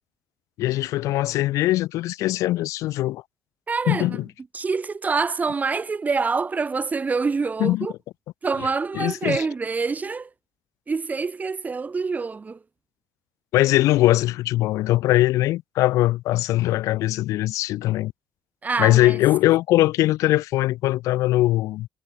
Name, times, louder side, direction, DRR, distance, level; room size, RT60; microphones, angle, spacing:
voice 1, 0.6-3.2 3.9-4.2 7.6-7.9 8.6-8.7 8.9-9.4 13.5-18.1 18.8-21.9, left 16 dB, 80° left, 1.4 m, -21 dB
voice 2, 3.7-4.2 4.5-7.9 8.4-10.3 10.9-12.6 18.6-19.2, right 4 dB, 30° right, 1.6 m, -26 dB
supercardioid pair, 75°, 5 cm